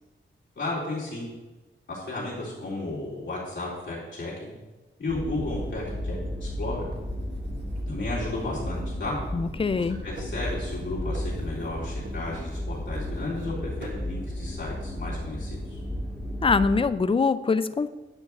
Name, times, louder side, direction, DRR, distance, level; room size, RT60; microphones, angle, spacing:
voice 1, 0.6-1.3 1.9-4.5 5.0-6.9 7.9-9.2 9.8-15.8, left 2 dB, 65° left, -7 dB, 3.9 m, -33 dB
sound 1, 5.1-16.9, equal, 5° left, 2.0 m, -33 dB
sound 2, 6.9-8.9 9.2-9.9 10.2-10.9 11.1-11.7 12.0-13.5 13.8-14.1, right 1 dB, 55° right, 1.3 m, -48 dB
voice 2, 9.3-10.0 16.4-17.9, left 4 dB, 25° left, 14 dB, 0.4 m, -23 dB
10.5 x 4.8 x 8.0 m, 1.2 s
wide cardioid pair, 170°, 21 cm